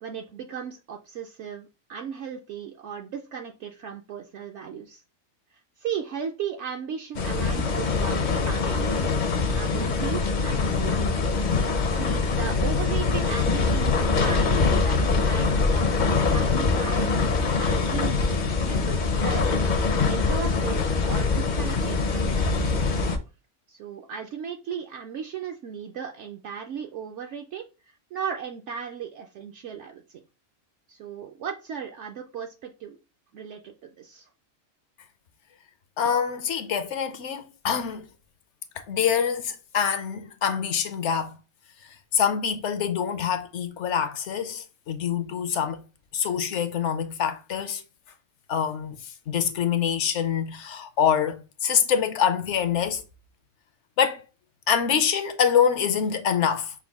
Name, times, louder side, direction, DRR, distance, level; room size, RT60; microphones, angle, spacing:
voice 1, 0.0-5.0 5.5-9.1 9.5-11.2 11.9-18.4 18.6-19.5 20.1-23.0 23.7-30.2 30.9-33.0 33.3-34.3, right 7 dB, 65° right, 0.9 m, -36 dB
sound 1, 7.1-23.2, left 4 dB, 50° left, 0.6 m, -23 dB
voice 2, 36.0-38.0 38.8-41.4 42.1-45.8 46.1-47.8 48.5-49.0 49.3-53.0 54.0-54.2 54.7-56.7, left 8 dB, 65° left, 0.9 m, -25 dB
5.9 x 2.2 x 3.5 m
omnidirectional pair, 1.4 m